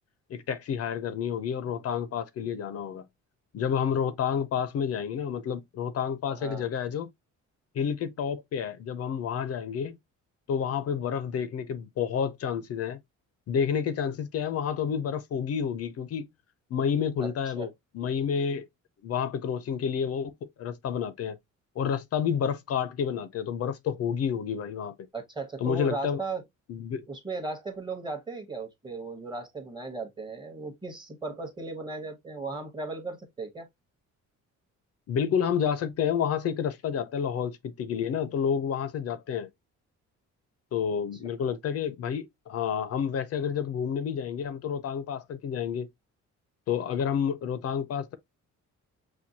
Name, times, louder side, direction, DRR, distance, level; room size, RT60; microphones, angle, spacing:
voice 1, 0.3-3.1 3.5-7.1 7.7-10.0 10.5-13.0 13.5-16.3 16.7-18.7 19.0-20.3 20.6-21.4 21.8-24.9 25.6-26.2 26.7-27.1 35.1-39.5 40.7-45.9 46.7-48.1, left 7 dB, 55° left, 0.5 m, -29 dB
voice 2, 6.3-6.7 17.2-17.7 25.1-26.4 27.1-33.7 41.5-41.6, right 3 dB, 15° right, 0.9 m, -36 dB
6.0 x 2.2 x 2.6 m
cardioid pair, 140°, 30 cm